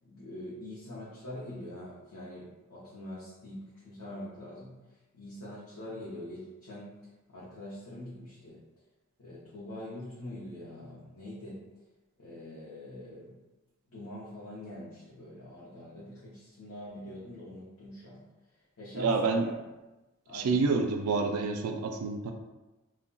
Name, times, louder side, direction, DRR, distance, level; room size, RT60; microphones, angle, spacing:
voice 1, 0.0-4.8 5.1-6.9 7.3-8.6 9.2-11.6 12.2-13.4 13.9-18.2 18.8-19.5 20.3-20.6, left 1 dB, 75° left, -8 dB, 0.7 m, -44 dB
voice 2, 18.9-19.5 20.3-22.3, right 4 dB, 85° right, 5 dB, 0.3 m, -28 dB
2.2 x 2.1 x 3.7 m, 1.1 s
head